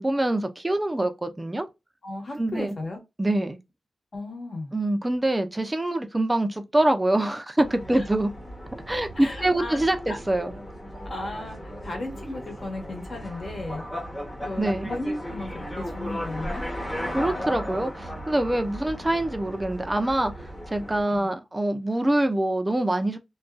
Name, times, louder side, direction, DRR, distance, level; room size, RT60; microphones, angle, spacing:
voice 1, 0.0-1.7 2.4-2.7 3.2-3.6 4.7-8.3 8.9-10.5 14.6-14.9 17.1-20.3 20.7-23.2, right 1 dB, 15° right, 0.5 m, -25 dB
voice 2, 2.0-3.0 4.1-4.7 7.9-8.1 9.2-9.8 10.1-10.2 11.0-13.8 14.4-16.6 18.8-19.0 21.0-21.3, left 2 dB, 45° left, 1.2 m, -35 dB
sound 1, 7.6-21.0, equal, 10° left, 1.0 m, -36 dB
2.6 x 2.3 x 2.2 m
wide cardioid pair, 90°, 0 cm